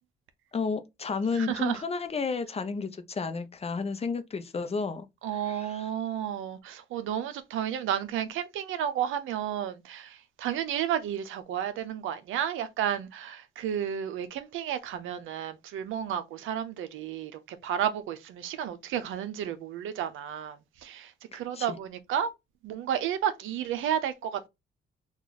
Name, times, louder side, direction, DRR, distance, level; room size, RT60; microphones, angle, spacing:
voice 1, 0.5-5.1 5.5-5.8 21.3-21.7, left 4 dB, 30° left, 0.6 m, -32 dB
voice 2, 1.3-1.8 5.2-22.3 22.6-24.5, right 9 dB, 80° right, 0.6 m, -32 dB
3.0 x 2.4 x 3.8 m
cardioid pair, 90°, 20 cm